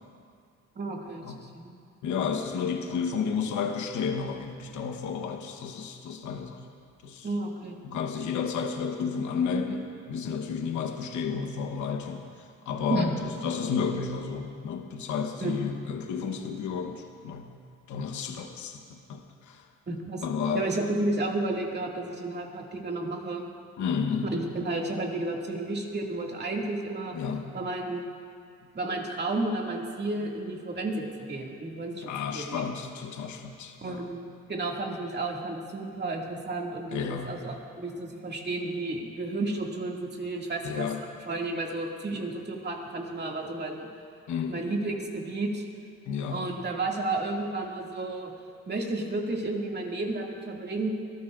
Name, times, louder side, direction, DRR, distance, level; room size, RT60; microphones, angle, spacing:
voice 1, 0.8-1.7 7.2-7.7 12.9-13.1 15.4-15.6 19.9-20.2 20.5-23.5 24.3-27.2 27.5-28.1 28.7-32.7 33.8-40.9 41.2-43.9 44.5-45.7 46.3-48.3 48.7-50.9, right 2 dB, 35° right, -1 dB, 2.3 m, -32 dB
voice 2, 2.0-6.6 7.0-7.3 7.8-12.2 12.7-17.5 17.9-19.6 20.2-20.6 23.8-24.3 27.1-27.5 32.0-34.0 36.9-37.3 40.6-41.0 44.3-44.6 46.1-46.4, left 6 dB, 75° left, 4 dB, 1.1 m, -31 dB
23.0 x 14.0 x 2.5 m, 2.3 s
cardioid pair, 90°, 30 cm